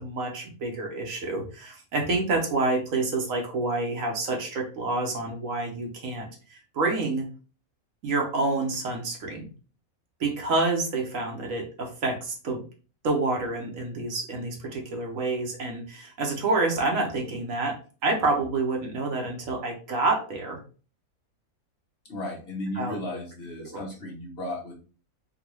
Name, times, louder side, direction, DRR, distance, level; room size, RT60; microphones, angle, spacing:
voice 1, 0.0-7.3 8.0-9.5 10.2-12.6 13.0-17.8 18.0-20.6 22.8-22.9 23.6-23.8, right 3 dB, 65° right, 2 dB, 1.2 m, -28 dB
voice 2, 22.0-24.7, left 1 dB, 50° left, -1 dB, 1.0 m, -35 dB
3.8 x 2.3 x 3.0 m, 0.36 s
omnidirectional pair, 1.5 m